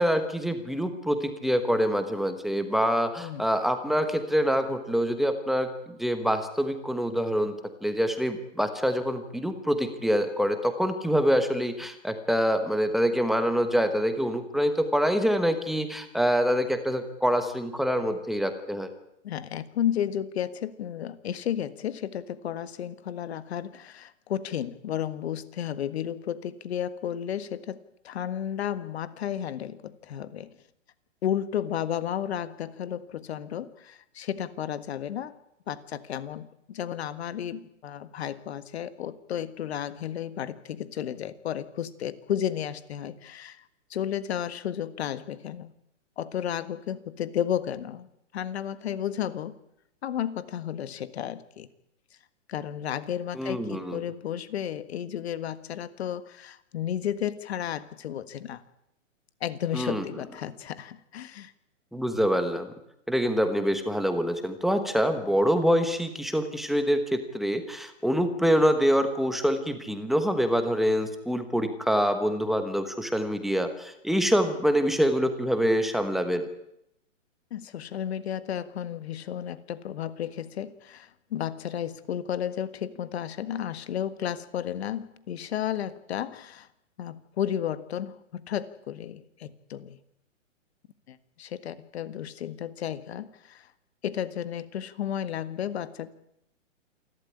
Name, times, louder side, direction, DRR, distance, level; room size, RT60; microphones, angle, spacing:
voice 1, 0.0-5.7 6.0-7.5 7.8-18.9 53.3-54.0 59.7-60.0 61.9-62.7 63.1-76.5, equal, ahead, 7 dB, 1.2 m, -25 dB
voice 2, 19.2-27.8 28.0-30.5 31.2-35.3 35.7-43.6 43.9-45.7 46.2-48.1 48.3-49.5 50.0-51.7 52.5-58.6 59.4-61.5 77.5-86.7 87.0-90.0 91.1-93.7 94.0-96.1, left 10 dB, 55° left, 13 dB, 1.7 m, -33 dB
28.0 x 12.5 x 9.9 m, 0.81 s
hypercardioid pair, 155°, 38 cm